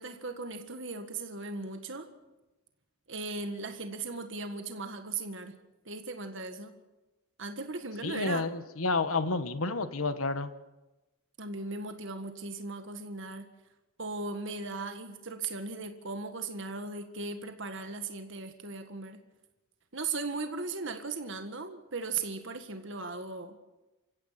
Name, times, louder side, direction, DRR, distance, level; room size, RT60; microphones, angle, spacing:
voice 1, 0.0-2.1 3.1-5.5 5.8-6.7 7.4-8.5 11.4-13.5 14.0-19.2 19.9-23.6, right 3 dB, 55° right, 6 dB, 1.7 m, -37 dB
voice 2, 8.0-10.5, left 3 dB, 75° left, 11 dB, 1.3 m, -30 dB
28.0 x 16.0 x 5.9 m, 1.1 s
head